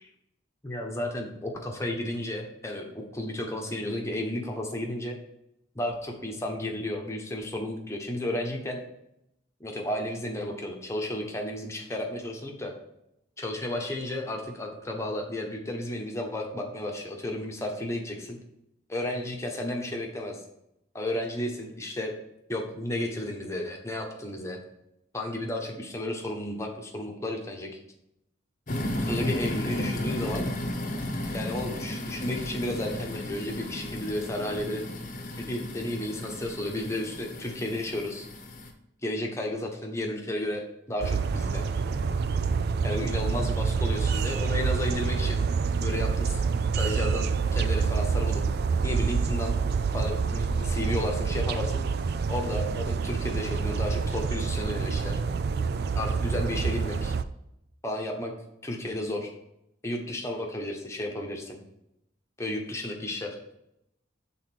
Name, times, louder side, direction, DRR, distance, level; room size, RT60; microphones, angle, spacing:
voice 1, 0.6-5.2 5.7-8.8 9.6-12.7 13.4-18.4 18.9-20.4 20.9-22.1 22.5-24.6 25.1-27.7 29.0-30.5 31.3-34.8 35.4-38.3 39.0-41.6 42.8-45.4 45.8-46.4 46.7-48.4 48.8-49.6 49.9-51.9 52.3-55.2 55.9-57.1 57.8-58.3 58.6-59.3 59.8-61.6 62.4-63.4, left 1 dB, 15° left, 0 dB, 1.1 m, -33 dB
sound 1, 28.7-38.7, left 1 dB, 40° left, 1.0 m, -34 dB
sound 2, 41.0-57.2, right 5 dB, 55° right, 0.4 m, -27 dB
6.5 x 3.9 x 5.9 m, 0.82 s
head